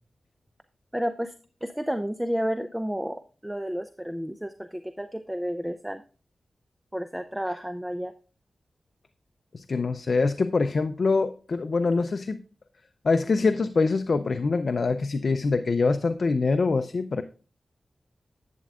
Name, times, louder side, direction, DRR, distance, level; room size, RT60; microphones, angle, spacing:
voice 1, 0.9-1.3 1.6-6.0 6.9-8.1, equal, 5° right, 9 dB, 0.5 m, -31 dB
voice 2, 9.5-12.4 13.0-17.2, left 4 dB, 60° left, 9 dB, 0.5 m, -24 dB
11.0 x 8.5 x 2.4 m, 0.37 s
wide cardioid pair, 80°, 0 cm